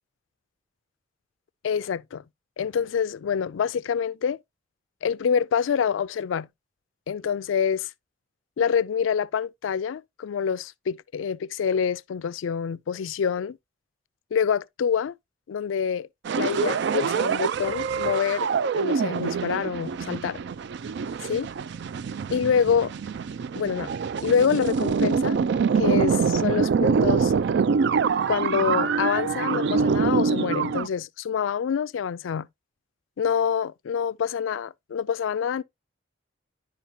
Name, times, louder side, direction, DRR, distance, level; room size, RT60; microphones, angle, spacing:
voice 1, 1.6-2.2 2.6-4.4 5.0-6.5 7.1-7.9 8.6-13.6 14.3-15.2 15.5-16.1 16.4-20.4 21.2-21.5 22.3-22.9 23.6-23.9 24.2-25.4 25.7-27.3 28.3-32.5 33.2-35.6, left 7 dB, 85° left, 0.4 m, -26 dB
sound 1, 16.2-30.9, right 5 dB, 60° right, 0.3 m, -25 dB
10.5 x 4.9 x 2.7 m
head